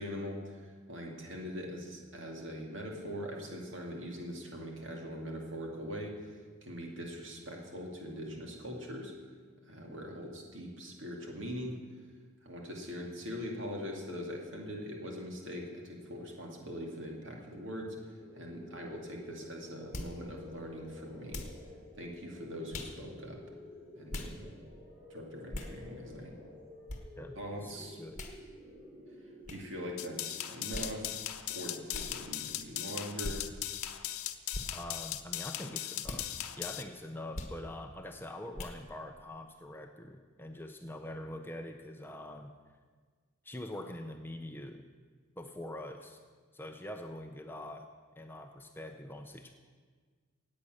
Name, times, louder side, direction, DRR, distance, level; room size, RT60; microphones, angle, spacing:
voice 1, 0.0-9.1 9.7-11.8 12.4-21.5 22.0-23.4 24.0-24.5 25.1-26.4 27.4-28.0 29.5-31.1 31.5-33.4, equal, 55° right, 0 dB, 2.4 m, -42 dB
sound 1, 18.2-31.0, left 2 dB, 10° right, 3.7 m, -52 dB
sound 2, 19.9-20.2 21.3-21.6 22.7-23.0 24.1-24.3 25.5-25.7 26.9-27.0 28.1-28.4 29.4-29.6 30.7-31.0 31.9-32.1 33.2-33.4 34.5-34.7 36.0-36.3 37.3-37.6 38.5-38.8, left 2 dB, 35° left, 1.3 m, -40 dB
sound 3, 30.0-36.8, left 12 dB, 85° left, 0.8 m, -38 dB
voice 2, 34.7-36.3 36.6-42.5 43.4-44.9 45.4-46.2 46.5-47.9 48.2-49.5, left 1 dB, 10° left, 5 dB, 0.6 m, -44 dB
17.0 x 8.6 x 6.5 m, 1.5 s
head